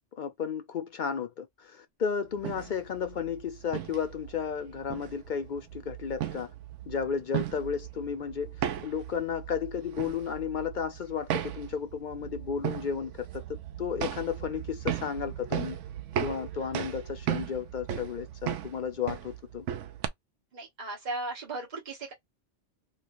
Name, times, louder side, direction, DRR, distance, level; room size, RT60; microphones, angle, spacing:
voice 1, 0.2-6.5 6.9-15.8 16.2-19.7, left 7 dB, 60° left, 0.5 m, -33 dB
sound 1, 2.3-20.1, right 11 dB, 85° right, 0.9 m, -37 dB
voice 2, 20.5-22.1, right 2 dB, 40° right, 1.3 m, -36 dB
3.1 x 3.0 x 2.5 m
omnidirectional pair, 1.2 m